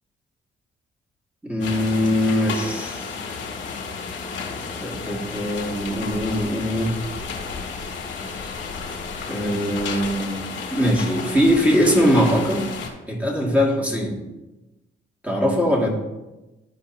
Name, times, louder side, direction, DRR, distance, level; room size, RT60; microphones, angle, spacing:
voice 1, 1.4-3.2 4.8-6.9 8.0-8.1 8.4-8.6 9.3-12.7 13.1-14.2 15.2-15.9, equal, 5° right, -2 dB, 2.3 m, -21 dB
sound 1, 1.6-12.9, left 5 dB, 75° left, 1.7 m, -32 dB
11.5 x 4.8 x 2.9 m, 1.0 s
cardioid pair, 90°, 20 cm